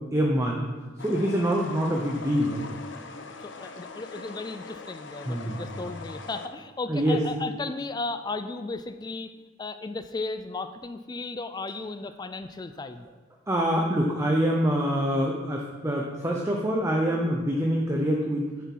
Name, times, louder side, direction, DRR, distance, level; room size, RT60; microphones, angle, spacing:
voice 1, 0.1-0.6 1.0-2.6 5.2-5.6 6.9-7.2 13.5-18.4, equal, 15° right, -1 dB, 0.8 m, -25 dB
sound 1, 1.0-6.5, left 4 dB, 70° left, 0.8 m, -42 dB
voice 2, 3.1-9.3 9.6-13.1, left 3 dB, 20° left, 10 dB, 0.3 m, -35 dB
9.9 x 6.9 x 4.6 m, 1.3 s
head